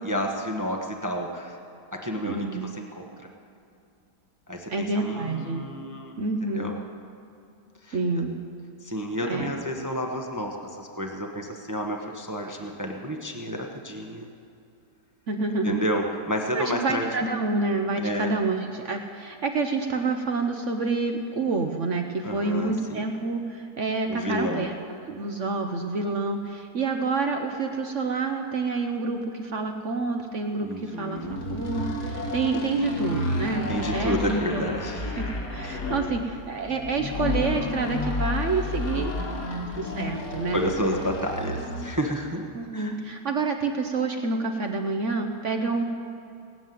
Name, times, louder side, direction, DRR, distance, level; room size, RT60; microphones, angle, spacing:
voice 1, 0.0-1.6 1.9-3.3 4.5-6.1 6.4-6.7 7.8-8.2 8.8-14.3 15.6-17.1 17.9-18.3 22.2-23.0 24.1-24.7 30.6-31.4 32.8-32.9 33.7-35.2 35.6-35.8 38.9-39.5 40.5-42.9, equal, 15° right, 2 dB, 0.8 m, -31 dB
voice 2, 2.2-2.7 4.7-5.6 6.2-6.8 7.9-8.4 9.2-9.5 15.3-15.8 16.5-34.2 34.5-34.6 35.2-39.3 39.7-40.6 42.5-45.8, right 3 dB, 50° right, 4 dB, 1.0 m, -28 dB
sound 1, 31.2-42.0, left 2 dB, 70° left, 2.6 m, -31 dB
18.5 x 7.3 x 9.2 m, 2.7 s
omnidirectional pair, 1.9 m